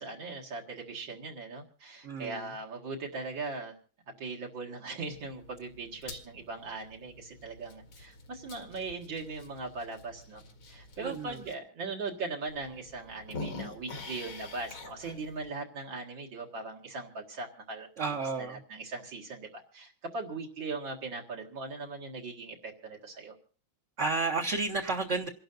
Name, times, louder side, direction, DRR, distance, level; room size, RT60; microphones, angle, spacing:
voice 1, 0.0-3.7 4.1-10.4 10.7-17.9 18.4-23.3, right 3 dB, 70° right, 0 dB, 2.7 m, -39 dB
voice 2, 2.0-2.5 11.0-11.4 18.0-18.6 24.0-25.3, right 3 dB, 45° right, 2 dB, 1.2 m, -31 dB
sound 1, 5.1-11.5 12.1-12.2 12.5-15.5, left 3 dB, 80° left, 2.7 m, -46 dB
28.0 x 11.5 x 2.6 m, 0.42 s
omnidirectional pair, 2.2 m